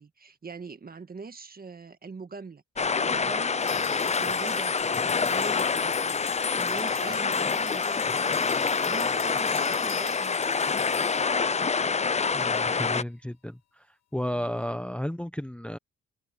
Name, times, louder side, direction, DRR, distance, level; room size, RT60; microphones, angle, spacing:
voice 1, 0.0-6.2 6.5-10.6, right 4 dB, 30° right, 1.8 m, -43 dB
sound 1, 2.8-13.0, left 5 dB, 20° left, 0.7 m, -26 dB
Wind instrument woodwind instrument, 3.5-7.3, right 2 dB, 15° right, 7.1 m, -57 dB
sound 2, 3.6-12.1, left 10 dB, 60° left, 1.3 m, -41 dB
voice 2, 12.3-13.8 14.1-15.8, equal, 5° left, 1.1 m, -33 dB
open air
cardioid pair, 90°, 30 cm